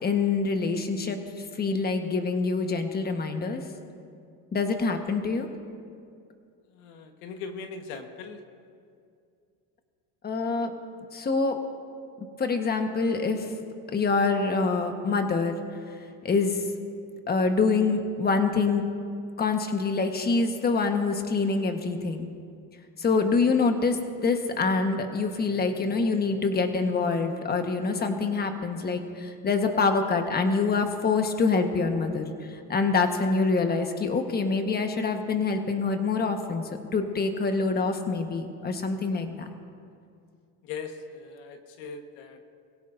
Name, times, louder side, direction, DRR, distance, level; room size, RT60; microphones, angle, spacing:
voice 1, 0.0-1.2 1.6-3.6 4.5-5.5 10.2-10.7 11.1-11.6 12.4-13.5 13.9-15.6 16.2-16.6 17.3-18.8 19.4-22.3 23.0-36.6 36.9-39.5, left 4 dB, 25° left, 5 dB, 1.4 m, -25 dB
voice 2, 6.8-8.4 40.6-42.4, left 5 dB, 80° left, 5 dB, 1.5 m, -39 dB
23.0 x 16.0 x 2.7 m, 2.3 s
supercardioid pair, 120°, 39 cm